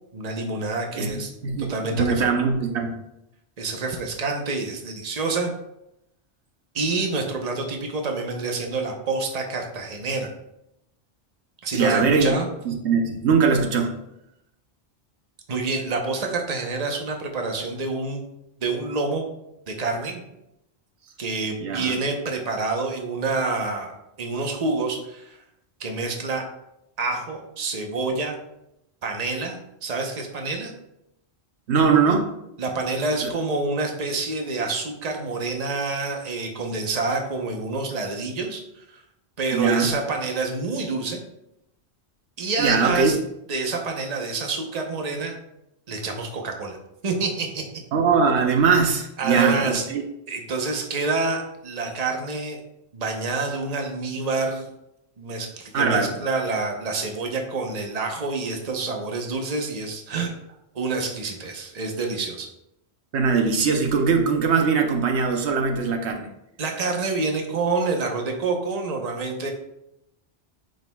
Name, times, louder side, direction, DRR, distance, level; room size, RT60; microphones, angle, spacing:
voice 1, 0.1-1.3 1.6-2.3 3.6-5.5 6.7-10.3 11.6-12.5 15.5-18.2 18.6-19.2 19.7-20.2 21.2-23.9 24.2-25.4 25.8-26.4 27.0-28.4 29.0-30.7 32.6-39.0 39.4-41.2 42.4-43.2 43.5-45.3 45.9-46.8 47.0-47.6 49.2-49.8 50.3-52.6 52.9-54.7 55.2-60.4 60.7-62.5 66.6-69.5, right 3 dB, 40° right, 2 dB, 0.9 m, -27 dB
voice 2, 1.4-2.9 11.7-12.4 12.7-13.9 21.6-21.9 31.7-32.3 33.2-33.3 39.5-39.9 42.6-43.1 47.9-50.0 55.7-56.1 63.1-66.3, right 5 dB, 80° right, 4 dB, 1.0 m, -21 dB
9.2 x 5.2 x 2.3 m, 0.84 s
omnidirectional pair, 1.1 m